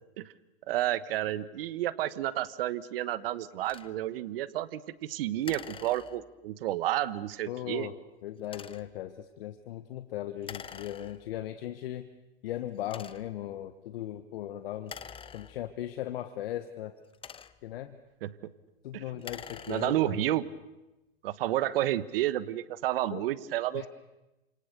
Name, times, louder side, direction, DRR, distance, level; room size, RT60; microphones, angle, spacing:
voice 1, 0.7-7.9 18.2-18.3 18.9-19.0 19.7-20.4 21.2-23.9, right 13 dB, 65° right, 15 dB, 1.4 m, -31 dB
sound 1, 3.6-3.9 5.4-6.5 8.4-9.0 10.4-11.4 12.1-12.2 12.8-13.5 14.8-15.9 16.9-17.8 19.1-20.2, left 7 dB, 15° left, 1.0 m, -46 dB
voice 2, 7.5-12.1 12.4-14.9 15.3-16.9 17.6-18.0 18.8-20.2 23.1-23.3 23.7-23.9, left 12 dB, 65° left, 9 dB, 1.5 m, -38 dB
29.0 x 27.0 x 6.9 m, 1.0 s
hypercardioid pair, 115°, 31 cm